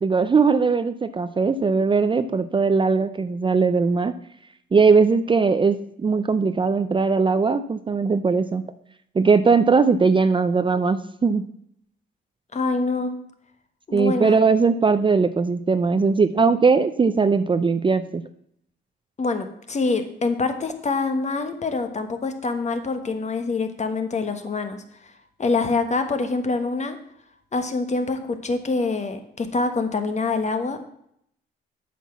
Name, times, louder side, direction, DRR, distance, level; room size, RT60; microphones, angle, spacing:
voice 1, 0.0-4.1 4.7-8.6 9.1-11.4 13.9-18.2, right 4 dB, 25° right, 11 dB, 0.5 m, -19 dB
voice 2, 12.5-13.1 13.9-14.4 19.2-25.1 25.4-27.0 27.5-30.9, left 3 dB, 35° left, 7 dB, 1.4 m, -25 dB
8.4 x 6.0 x 7.1 m, 0.72 s
cardioid pair, 90°, 20 cm